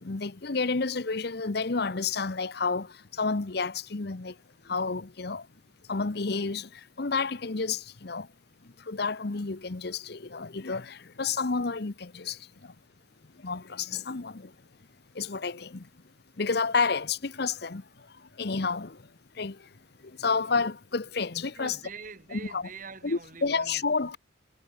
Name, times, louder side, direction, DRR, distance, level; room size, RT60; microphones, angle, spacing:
voice 1, 0.0-2.9 3.2-4.3 4.7-5.4 5.9-6.7 7.0-8.3 8.9-12.4 13.4-14.5 15.2-15.8 16.4-17.8 18.4-19.0 19.4-19.6 20.2-21.7 22.3-22.6 23.0-24.2, left 4 dB, 55° left, 0.9 m, -30 dB
voice 2, 21.5-24.2, right 4 dB, 40° right, 2.8 m, -45 dB
head